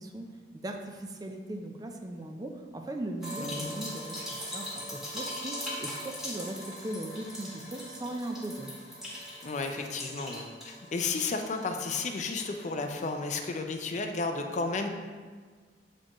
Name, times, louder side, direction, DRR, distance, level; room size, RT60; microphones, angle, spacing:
voice 1, 0.0-8.7, right 1 dB, 20° right, 4 dB, 0.4 m, -39 dB
sound 1, 3.2-10.9 11.2-12.7 13.0-13.1 13.4-13.5, left 1 dB, ahead, 1.5 m, -40 dB
voice 2, 9.4-14.9, left 4 dB, 45° left, 5 dB, 0.4 m, -33 dB
7.5 x 4.2 x 3.0 m, 1.5 s
head